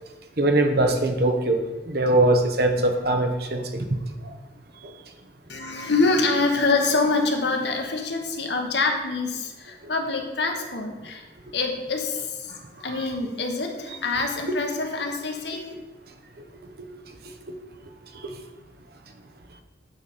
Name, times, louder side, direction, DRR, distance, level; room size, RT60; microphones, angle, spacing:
voice 1, 0.4-1.6 1.9-3.6 5.6-5.9, right 1 dB, 55° right, 5 dB, 0.9 m, -21 dB
voice 2, 5.5-11.2 11.5-12.5 12.8-15.7, left 3 dB, 65° left, 3 dB, 1.3 m, -25 dB
9.0 x 4.1 x 6.7 m, 1.2 s
head